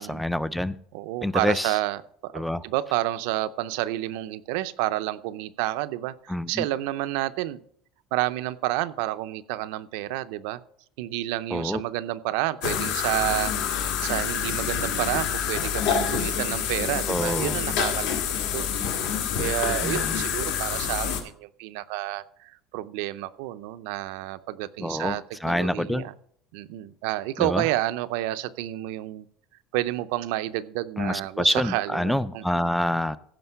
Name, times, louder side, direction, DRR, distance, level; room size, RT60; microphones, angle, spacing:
voice 1, 0.0-0.8 1.2-1.7 2.3-2.6 6.3-6.7 11.5-11.8 17.1-17.6 19.8-20.2 24.8-26.1 27.4-27.6 31.0-33.2, left 1 dB, ahead, 16 dB, 0.3 m, -27 dB
voice 2, 0.9-7.6 8.1-10.6 11.0-18.2 18.5-18.7 19.4-26.1 26.5-29.3 29.7-32.7, right 16 dB, 75° right, 13 dB, 0.5 m, -30 dB
sound 1, 12.6-21.2, left 8 dB, 80° left, 1.9 m, -27 dB
15.5 x 5.2 x 5.7 m, 0.63 s
cardioid pair, 180°, 0 cm